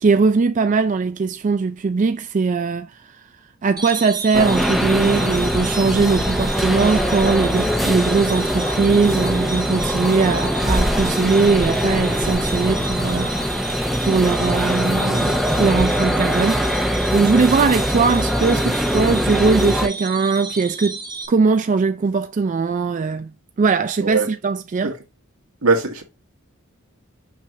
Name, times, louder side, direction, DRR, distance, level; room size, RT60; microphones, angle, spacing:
voice 1, 0.0-3.2 3.6-13.3 13.7-16.9 17.1-21.0 21.3-23.3 23.6-24.9, right 4 dB, 35° right, 0.4 m, -20 dB
sound 1, 3.8-21.3, right 3 dB, 20° right, 1.1 m, -32 dB
sound 2, 4.3-19.9, equal, ahead, 0.7 m, -22 dB
sound 3, 4.4-13.5, left 2 dB, 55° left, 1.7 m, -36 dB
voice 2, 25.6-26.0, right 3 dB, 80° right, 1.9 m, -20 dB
6.1 x 5.9 x 2.7 m
head